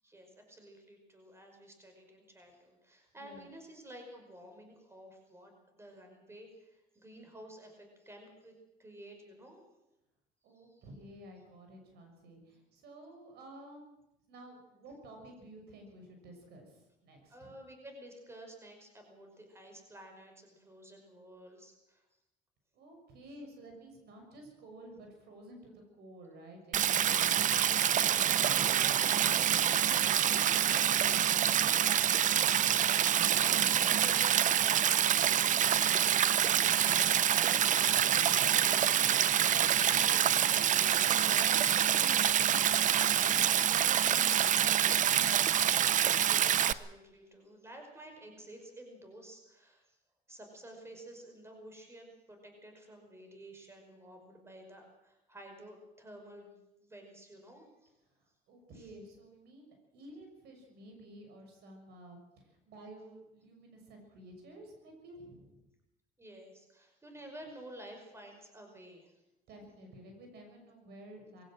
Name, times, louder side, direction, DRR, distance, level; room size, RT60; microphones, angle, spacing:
voice 1, 0.0-8.5 8.8-9.6 10.5-10.9 17.3-22.0 30.9-31.1 33.4-38.7 46.2-50.0 50.3-57.9 58.7-58.9 66.2-69.1, right 1 dB, 15° right, 3 dB, 5.3 m, -52 dB
voice 2, 3.2-3.5 10.4-13.9 14.3-17.5 22.7-30.3 39.7-45.3 58.5-65.6 69.5-71.4, right 1 dB, 75° right, 4 dB, 6.5 m, -52 dB
Stream, 26.7-46.7, right 10 dB, 50° right, 0.8 m, -26 dB
22.0 x 16.5 x 7.7 m, 0.91 s
cardioid pair, 110°, 17 cm